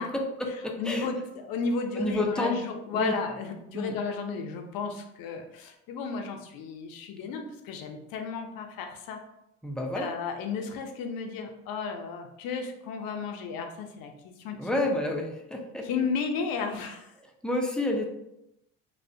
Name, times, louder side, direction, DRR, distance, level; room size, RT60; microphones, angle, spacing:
voice 1, 0.0-1.1 1.9-2.6 2.9-3.2 3.7-4.0 9.6-10.1 14.6-15.9 17.4-18.1, left 1 dB, ahead, 1 dB, 0.4 m, -29 dB
voice 2, 0.8-9.2 9.9-14.6 15.8-17.1, left 5 dB, 70° left, 5 dB, 0.5 m, -33 dB
2.6 x 2.0 x 2.5 m, 0.85 s
supercardioid pair, 65°, 36 cm